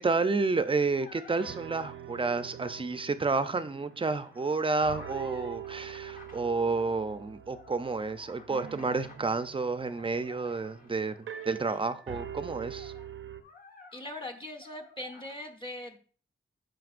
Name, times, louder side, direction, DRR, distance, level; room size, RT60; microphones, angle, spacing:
voice 1, 0.0-11.1 11.4-12.9, right 3 dB, 25° right, 0.5 m, -30 dB
sound 1, 0.9-1.5 3.9-6.4 7.5-9.3 9.8-11.8 12.5-14.3 14.6-15.3, left 3 dB, 45° left, 1.8 m, -53 dB
sound 2, 1.1-1.2 1.4-4.6 4.8-13.4, right 9 dB, 80° right, 0.6 m, -45 dB
voice 2, 13.9-16.0, left 1 dB, 25° left, 1.0 m, -40 dB
14.0 x 5.1 x 2.5 m
wide cardioid pair, 115°, 20 cm